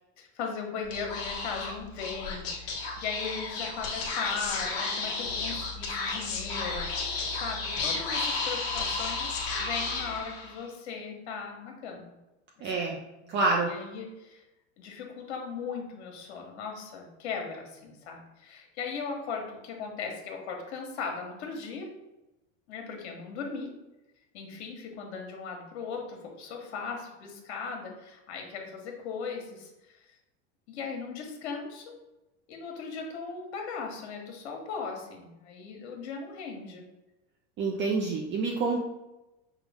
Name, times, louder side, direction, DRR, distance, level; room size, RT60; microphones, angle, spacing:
voice 1, 0.2-12.1 12.6-12.7 13.2-14.4 14.8-21.9 22.7-23.8 24.3-30.0 30.7-31.9 32.5-36.8, left 5 dB, 80° left, 1 dB, 1.1 m, -38 dB
Speech / Whispering, 0.8-10.7, left 3 dB, 45° left, 1.2 m, -33 dB
voice 2, 12.6-13.0 13.3-13.7 37.6-38.8, right 3 dB, 35° right, -1 dB, 0.6 m, -27 dB
5.4 x 2.3 x 3.5 m, 0.99 s
supercardioid pair, 120°, 33 cm